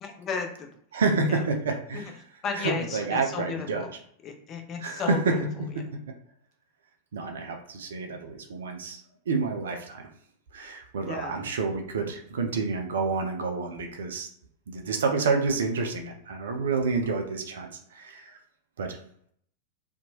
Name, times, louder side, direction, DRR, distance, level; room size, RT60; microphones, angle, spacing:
voice 1, 0.0-0.7 1.3-1.5 1.9-2.1 2.4-3.9 4.2-5.4 5.7-5.8 11.0-11.5, left 5 dB, 30° left, 3 dB, 0.6 m, -34 dB
voice 2, 0.9-2.1 2.6-3.8 4.8-5.4 5.9-6.0 7.1-9.0 9.3-10.0 10.5-14.3 14.7-18.4 18.8-19.0, right 4 dB, 65° right, 3 dB, 0.5 m, -29 dB
2.7 x 2.2 x 2.8 m, 0.66 s
figure-of-eight pair, 90°, 0 cm